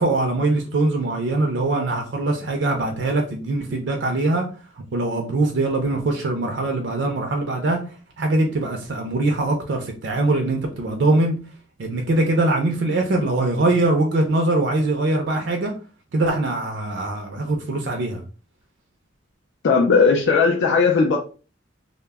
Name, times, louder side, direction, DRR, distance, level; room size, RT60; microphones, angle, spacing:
voice 1, 0.0-4.4 4.8-7.8 8.2-11.3 11.8-15.7 16.1-18.2, right 2 dB, 65° right, 0.4 m, -22 dB
voice 2, 19.6-21.2, left 5 dB, 70° left, 0.4 m, -17 dB
2.1 x 2.0 x 3.3 m
head